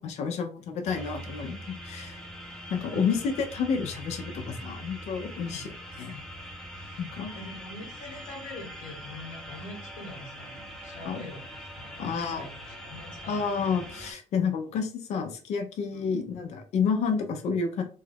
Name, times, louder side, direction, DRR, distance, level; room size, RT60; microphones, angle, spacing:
voice 1, 0.0-2.2 2.7-5.7 6.0-6.2 7.0-7.3 11.0-11.2 12.0-12.5 13.3-17.8, left 6 dB, 60° left, 5 dB, 0.5 m, -30 dB
sound 1, 0.9-14.1, equal, 5° left, 0.5 m, -42 dB
voice 2, 2.9-3.3 5.4-5.7 6.7-7.0 7.3-13.6 15.9-16.0, left 1 dB, 85° left, 2 dB, 1.0 m, -44 dB
3.1 x 2.3 x 3.3 m, 0.38 s
cardioid pair, 155°, 13 cm